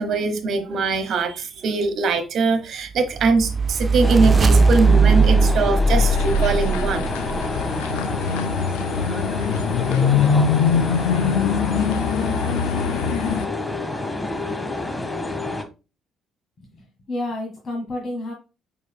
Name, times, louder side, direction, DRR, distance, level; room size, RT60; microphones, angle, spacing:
voice 1, 0.0-7.1, right 4 dB, 60° right, 7 dB, 1.0 m, -22 dB
sound 1, 3.2-7.4, right 3 dB, 35° right, 0.4 m, -18 dB
sound 2, 4.0-15.6, left 2 dB, 20° left, 1.1 m, -28 dB
sound 3, 6.0-13.5, left 7 dB, 80° left, 0.3 m, -23 dB
voice 2, 16.6-18.3, left 1 dB, 50° left, -1 dB, 1.6 m, -30 dB
5.0 x 4.7 x 2.2 m, 0.30 s
hypercardioid pair, 50°, 0 cm